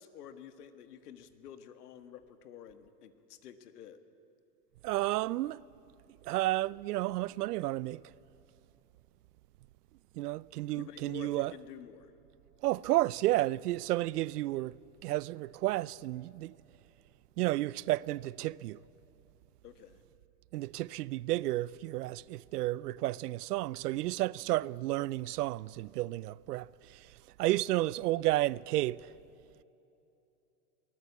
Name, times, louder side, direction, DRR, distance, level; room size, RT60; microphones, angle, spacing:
voice 1, 0.0-4.0 10.7-12.1 19.6-20.0, left 9 dB, 75° left, 1.8 m, -50 dB
voice 2, 4.8-5.6 6.2-8.0 10.2-11.5 12.6-14.8 15.0-16.5 17.4-18.8 20.5-27.1 27.4-29.1, right 17 dB, 80° right, 0.6 m, -32 dB
23.5 x 19.0 x 8.4 m
supercardioid pair, 175°, 46 cm